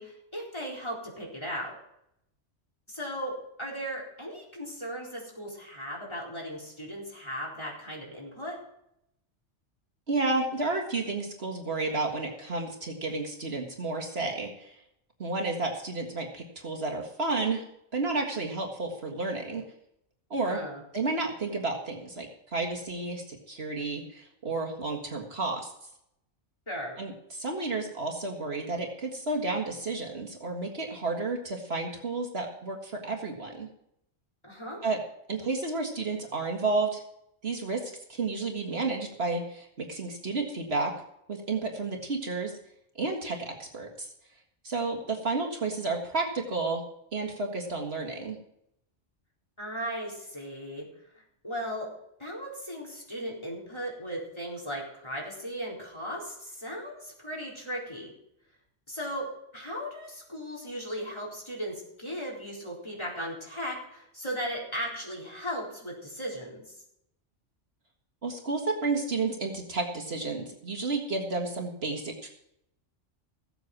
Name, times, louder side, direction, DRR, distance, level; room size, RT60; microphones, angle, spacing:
voice 1, 0.0-1.7 2.9-8.6 20.4-20.8 26.7-27.0 34.4-34.8 49.6-50.9 51.1-51.9 52.2-58.1 58.9-59.3 59.5-66.8, equal, 25° left, -3 dB, 4.2 m, -37 dB
voice 2, 10.1-14.8 15.2-17.7 17.9-19.6 20.3-20.6 20.9-25.7 27.0-33.7 34.8-35.0 35.3-37.0 37.4-40.9 41.3-42.5 43.0-44.1 44.6-46.8 47.1-48.4 68.2-72.3, right 3 dB, 60° right, 1 dB, 2.0 m, -31 dB
16.5 x 8.0 x 6.0 m, 0.77 s
omnidirectional pair, 1.2 m